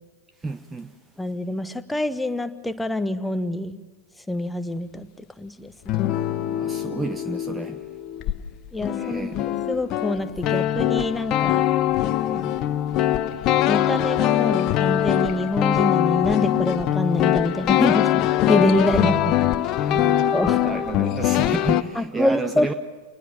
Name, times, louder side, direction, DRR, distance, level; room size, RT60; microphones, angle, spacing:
voice 1, 0.4-1.0 6.5-7.9 9.0-9.6 12.3-12.6 18.9-19.4 19.6-22.7, right 3 dB, 10° right, 0.9 m, -31 dB
voice 2, 1.2-3.8 4.3-5.1 5.4-6.0 8.7-9.3 9.7-11.7 13.6-19.0 20.3-20.6 21.9-22.7, left 1 dB, 5° left, 1.4 m, -25 dB
sound 1, 5.9-8.4 8.7-21.8, left 12 dB, 35° left, 1.1 m, -22 dB
28.5 x 20.0 x 7.5 m
figure-of-eight pair, 90°, 0 cm